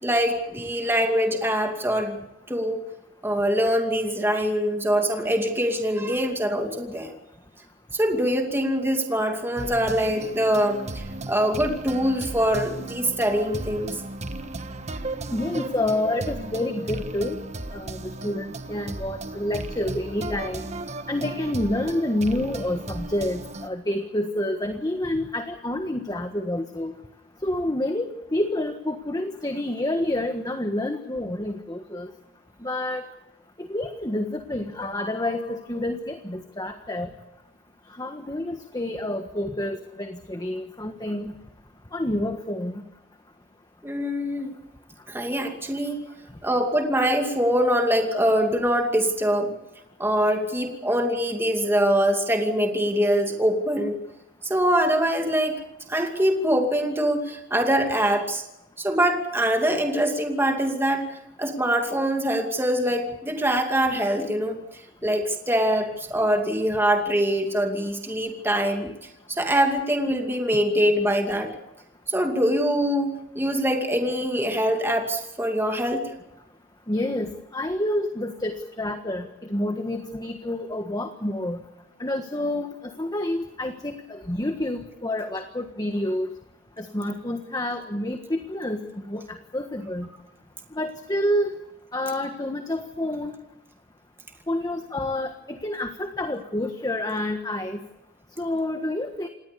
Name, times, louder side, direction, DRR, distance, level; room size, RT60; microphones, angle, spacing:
voice 1, 0.0-2.2 2.5-2.8 3.2-7.1 7.9-14.0 43.8-44.5 45.1-46.0 46.4-49.6 50.0-54.0 54.4-55.6 55.9-58.4 58.8-61.1 61.4-64.6 65.0-68.9 69.3-71.5 72.1-76.1, equal, 10° right, 3 dB, 2.5 m, -23 dB
sound 1, 9.6-23.7, right 2 dB, 35° right, 1.4 m, -35 dB
voice 2, 15.3-17.4 17.7-20.6 21.1-26.9 27.4-32.1 32.6-33.0 33.6-37.1 38.0-41.3 41.9-42.8 76.9-81.6 82.0-86.3 86.8-88.8 89.1-90.1 90.7-91.6 91.9-93.4 94.5-97.8 98.4-99.3, left 1 dB, 20° left, 6 dB, 1.5 m, -28 dB
28.0 x 19.5 x 6.9 m, 0.89 s
head